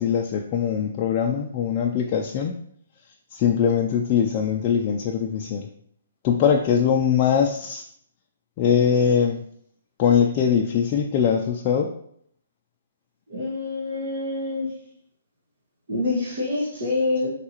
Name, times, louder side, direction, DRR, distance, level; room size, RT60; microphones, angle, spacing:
voice 1, 0.0-2.5 3.3-5.7 6.2-7.8 8.6-9.4 10.0-11.9, left 7 dB, 30° left, 1 dB, 0.4 m, -21 dB
voice 2, 13.3-14.7 15.9-17.3, left 2 dB, 60° right, -5 dB, 1.5 m, -26 dB
4.6 x 3.3 x 2.9 m, 0.67 s
hypercardioid pair, 150°, 0 cm